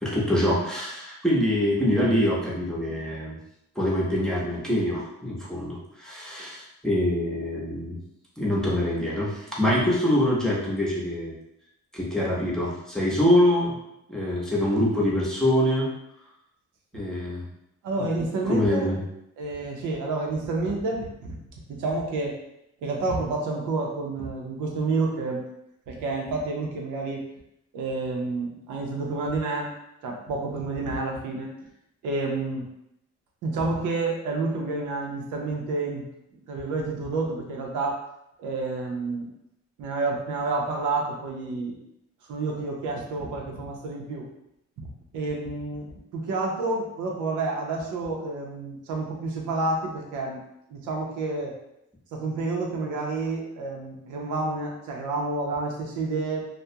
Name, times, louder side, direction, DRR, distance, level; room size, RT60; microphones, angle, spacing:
voice 1, 0.0-3.3 3.8-8.0 8.4-11.3 11.9-13.8 14.1-15.9 16.9-17.5 18.5-19.0, left 1 dB, ahead, -6 dB, 0.7 m, -24 dB
voice 2, 17.8-18.9 19.4-21.1 21.7-22.4 22.8-25.4 25.9-27.3 27.7-29.7 30.0-31.6 32.0-32.6 33.4-36.0 36.3-38.0 38.4-39.3 39.8-41.8 42.3-44.3 45.1-45.8 46.1-50.4 50.7-51.6 52.1-56.5, right 3 dB, 85° right, 0 dB, 0.6 m, -29 dB
2.3 x 2.1 x 2.7 m, 0.80 s
cardioid pair, 90°, 30 cm